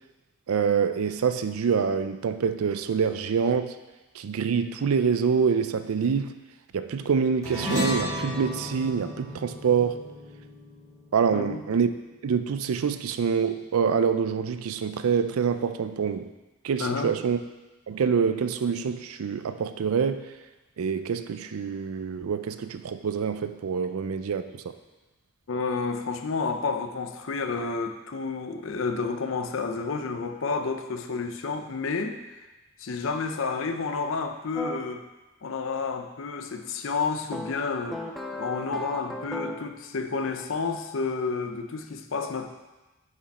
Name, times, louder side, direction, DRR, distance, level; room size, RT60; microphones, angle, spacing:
voice 1, 0.5-3.8 4.1-6.4 6.7-10.0 11.1-11.9 12.2-16.3 16.6-17.4 17.9-20.3 20.8-24.7, right 6 dB, 85° right, 10 dB, 0.4 m, -26 dB
sound 1, 7.4-12.1, left 1 dB, 15° right, 2.0 m, -33 dB
voice 2, 11.3-11.6 16.8-17.1 25.5-32.2 32.8-35.0 35.4-38.0 38.4-42.5, left 4 dB, 70° left, 7 dB, 0.5 m, -30 dB
sound 2, 34.5-34.8 37.3-39.7, left 1 dB, ahead, 0.4 m, -35 dB
6.9 x 5.1 x 4.1 m, 1.1 s
head